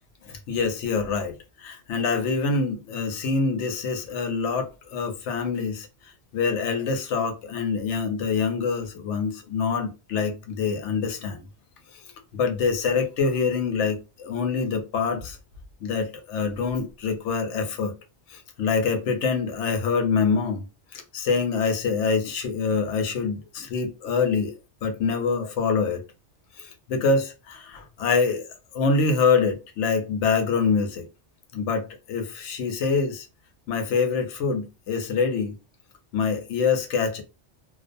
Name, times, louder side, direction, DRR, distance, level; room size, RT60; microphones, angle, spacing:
voice 1, 0.2-11.5 11.9-12.0 12.3-15.4 15.8-17.9 18.3-20.6 20.9-24.5 24.8-26.0 26.6-28.5 28.7-31.1 31.5-33.3 33.7-35.6 36.1-37.2, left 5 dB, 90° left, 0.9 m, -25 dB
2.3 x 2.2 x 2.5 m
omnidirectional pair, 1.2 m